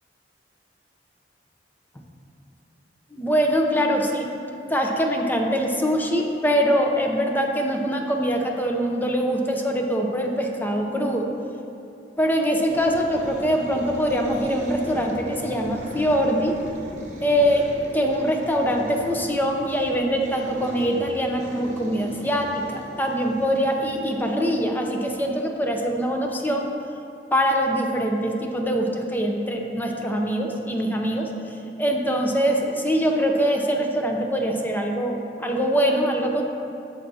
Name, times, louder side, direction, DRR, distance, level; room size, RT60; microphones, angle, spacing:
voice 1, 3.1-4.3 4.7-11.3 12.2-16.6 17.2-17.7 17.9-26.7 27.3-31.3 31.8-36.4, equal, 10° left, 2 dB, 0.6 m, -23 dB
sound 1, 12.7-25.6, equal, 40° right, 0.9 m, -39 dB
10.5 x 7.2 x 2.8 m, 2.7 s
head